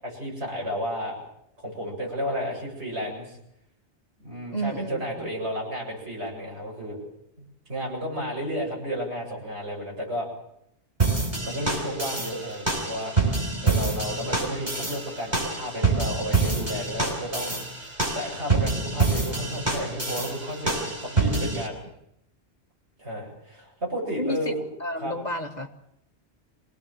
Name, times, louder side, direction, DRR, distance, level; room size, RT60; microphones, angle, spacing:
voice 1, 0.0-1.2 1.6-3.4 4.2-7.0 7.4-10.3 11.1-13.1 13.6-21.8 23.0-24.5 25.0-25.1, equal, 70° right, -2 dB, 8.4 m, -32 dB
voice 2, 4.5-5.3 24.2-25.7, equal, 40° left, 5 dB, 1.6 m, -31 dB
sound 1, 11.0-21.7, right 3 dB, 40° right, 5.5 m, -27 dB
25.5 x 18.5 x 7.5 m, 0.80 s
omnidirectional pair, 1.2 m